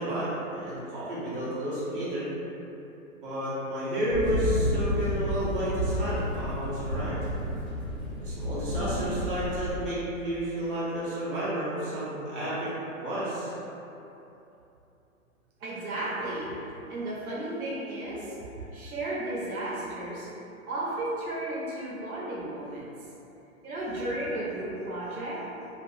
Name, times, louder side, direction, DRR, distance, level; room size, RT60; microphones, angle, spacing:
voice 1, 0.0-2.3 3.2-7.2 8.2-12.7 13.0-13.5, right 1 dB, 40° right, -10 dB, 0.9 m, -31 dB
sound 1, 4.1-9.7, equal, 25° left, 0.7 m, -30 dB
voice 2, 15.6-16.6 16.9-20.3 20.7-22.9 23.6-25.5, right 1 dB, 80° right, -5 dB, 0.8 m, -34 dB
2.8 x 2.3 x 2.6 m, 2.9 s
hypercardioid pair, 165°, 43 cm